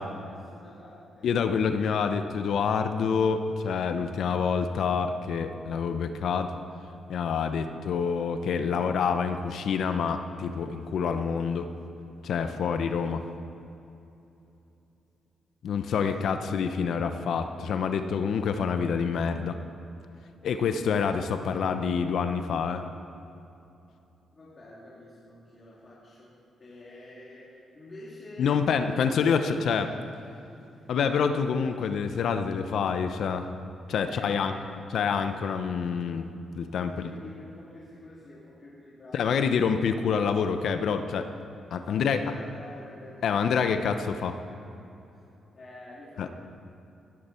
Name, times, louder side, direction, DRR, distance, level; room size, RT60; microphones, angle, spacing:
voice 1, 0.0-1.3 16.0-16.4 24.3-26.3 26.6-28.9 30.5-30.9 34.0-34.7 36.8-39.5 41.7-43.6 45.5-46.4, left 1 dB, 40° left, -7 dB, 3.1 m, -47 dB
voice 2, 1.2-6.5 7.1-11.7 12.2-13.2 15.6-19.6 20.4-22.8 28.4-29.9 30.9-33.5 33.9-34.5 34.9-36.3 36.6-36.9 39.1-41.3 41.7-42.2 43.2-44.4 46.2-46.3, left 6 dB, 75° left, 8 dB, 0.7 m, -27 dB
18.5 x 10.5 x 4.4 m, 2.9 s
cardioid pair, 75°, 0 cm